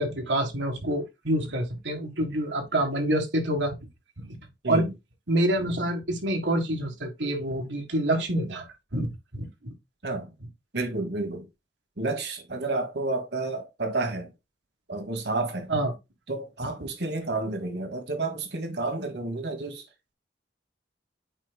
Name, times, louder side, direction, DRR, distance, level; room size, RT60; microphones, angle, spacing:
voice 1, 0.0-3.8 4.2-4.4 4.7-4.9 5.3-9.7 15.7-15.9 16.6-16.9, right 1 dB, 90° right, 1.8 m, -27 dB
voice 2, 10.7-11.5 12.0-14.3 14.9-15.7 16.3-19.8, right 2 dB, 65° right, 1.4 m, -30 dB
8.9 x 4.7 x 2.3 m
head